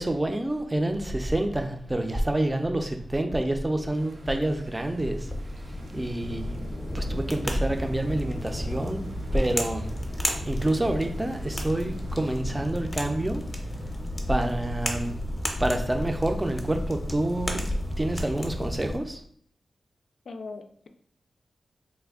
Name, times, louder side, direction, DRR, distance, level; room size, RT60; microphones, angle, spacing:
voice 1, 0.0-6.6 6.9-9.0 9.3-9.9 10.4-13.6 14.3-15.3 15.6-17.7 18.0-19.2, right 1 dB, 15° right, 5 dB, 0.5 m, -28 dB
Bosch Dishwasher Motor - Base of Machine Close, 3.9-12.4, right 1 dB, 85° right, 0.7 m, -47 dB
sound 1, 5.2-19.0, left 1 dB, 25° left, 0.6 m, -33 dB
voice 2, 20.3-20.9, left 3 dB, 80° left, 6 dB, 0.3 m, -40 dB
3.2 x 2.2 x 3.5 m, 0.63 s
wide cardioid pair, 85°, 0 cm